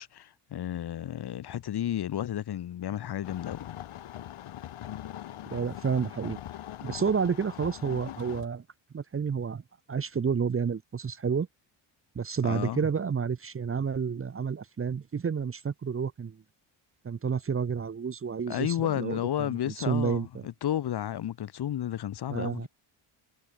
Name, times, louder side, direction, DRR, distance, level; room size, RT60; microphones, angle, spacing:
voice 1, 0.0-3.6 12.4-12.8 18.5-22.7, left 11 dB, 50° left, 0.9 m, -32 dB
sound 1, 3.2-8.5, left 12 dB, 80° left, 6.2 m, -41 dB
voice 2, 5.5-6.4 6.8-8.6 8.9-9.6 9.9-11.5 12.1-16.4 17.0-20.5 22.3-22.7, right 6 dB, 25° right, 0.8 m, -30 dB
cardioid pair, 95°, 49 cm